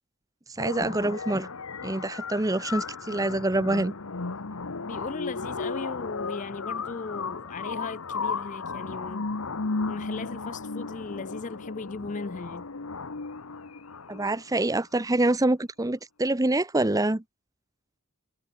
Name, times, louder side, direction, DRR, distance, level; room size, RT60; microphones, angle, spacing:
voice 1, 0.5-1.5 1.8-3.9 14.1-17.2, right 2 dB, 15° right, 0.7 m, -26 dB
sound 1, 0.6-14.6, left 4 dB, 85° left, 1.2 m, -35 dB
voice 2, 4.8-9.3 9.9-12.7, left 4 dB, 35° left, 0.5 m, -37 dB
head